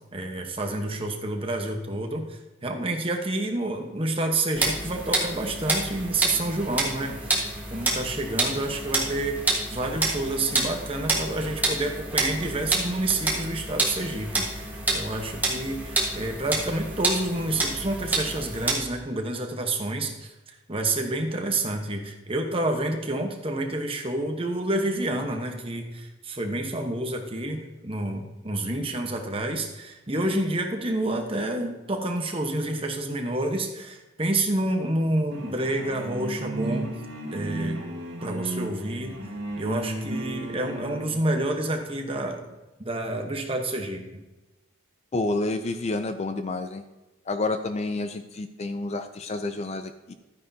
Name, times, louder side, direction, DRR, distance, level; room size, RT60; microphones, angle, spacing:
voice 1, 0.1-7.4 7.7-9.4 9.7-36.9 37.3-37.8 38.2-39.1 39.6-42.5 42.8-44.2, right 2 dB, 25° right, 3 dB, 1.1 m, -29 dB
sound 1, 4.5-18.7, right 2 dB, 10° right, 1.5 m, -28 dB
sound 2, 35.3-41.2, right 2 dB, 60° right, 2.1 m, -33 dB
voice 2, 45.1-46.8 47.3-50.1, left 2 dB, 30° left, 9 dB, 0.4 m, -29 dB
12.5 x 9.4 x 2.8 m, 1.1 s
head